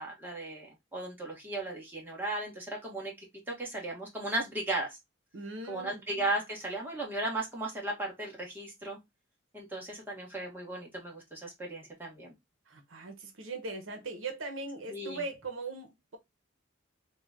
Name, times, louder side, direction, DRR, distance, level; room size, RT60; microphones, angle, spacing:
voice 1, 0.0-5.0 5.7-9.0 9.5-12.3 14.9-15.2, right 2 dB, 10° right, 1.1 m, -36 dB
voice 2, 5.3-6.0 12.7-16.2, right 3 dB, 75° right, 0.8 m, -40 dB
3.8 x 2.2 x 3.5 m
head